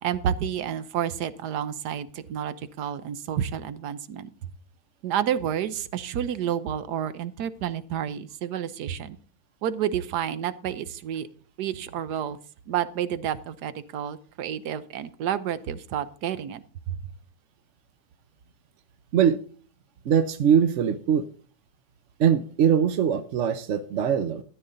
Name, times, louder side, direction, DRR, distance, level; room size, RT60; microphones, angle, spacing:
voice 1, 0.0-4.3 5.0-9.2 9.6-11.3 11.6-12.4 12.7-17.0, right 9 dB, 85° right, 15 dB, 1.4 m, -30 dB
voice 2, 20.0-21.2 22.2-24.4, right 8 dB, 60° right, 11 dB, 0.9 m, -22 dB
13.5 x 10.0 x 3.9 m, 0.40 s
omnidirectional pair, 1.7 m